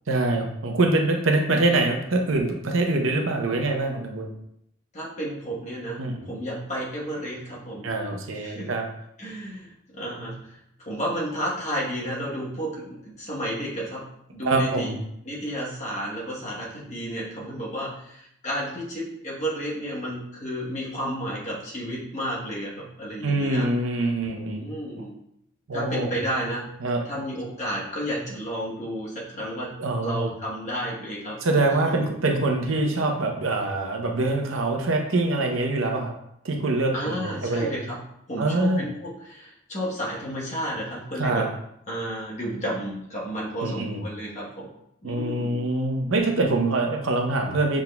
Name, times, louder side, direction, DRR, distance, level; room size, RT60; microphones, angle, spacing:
voice 1, 0.1-4.3 6.0-6.3 7.8-8.8 14.4-15.0 23.2-24.6 25.7-26.1 26.8-27.0 29.8-30.3 31.4-36.1 36.4-37.7 38.4-38.9 41.2-41.5 43.6-44.0 45.0-47.8, right 2 dB, 85° right, 3 dB, 0.7 m, -24 dB
voice 2, 4.9-7.9 8.3-8.7 9.2-14.9 15.2-23.7 24.5-25.1 25.7-26.7 27.0-29.8 30.0-31.8 32.7-32.8 36.9-38.0 38.3-41.5 41.9-44.7 45.0-45.6, equal, 35° left, -5 dB, 1.1 m, -32 dB
5.9 x 3.6 x 2.3 m, 0.76 s
head